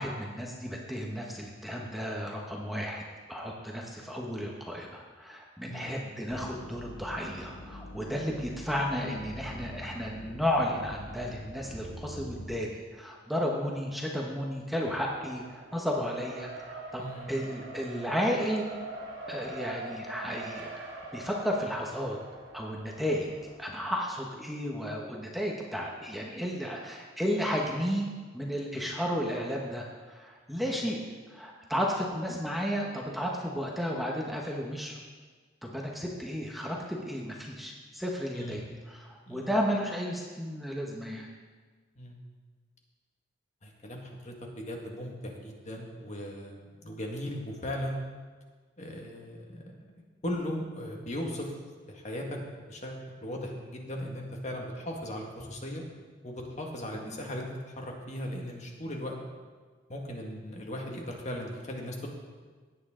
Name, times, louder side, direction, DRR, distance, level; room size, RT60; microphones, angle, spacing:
voice 1, 0.0-3.0 3.3-18.7 19.3-22.2 22.5-23.3 23.6-28.1 28.3-31.0 31.3-35.0 35.6-41.3 56.9-57.2, equal, ahead, -1 dB, 1.0 m, -33 dB
sound 1, 6.3-12.6, left 1 dB, 70° left, 1.3 m, -45 dB
Race car auto racing, 15.1-24.0, right 3 dB, 80° right, 2.2 m, -44 dB
voice 2, 17.0-17.5 30.6-30.7 38.3-38.7 39.3-39.5 42.0-42.2 43.6-48.0 48.8-51.5 51.9-52.4 52.7-55.8 56.2-57.5 57.8-59.2 59.9-62.1, equal, 40° left, 0 dB, 1.8 m, -38 dB
17.5 x 8.9 x 3.8 m, 1.5 s
head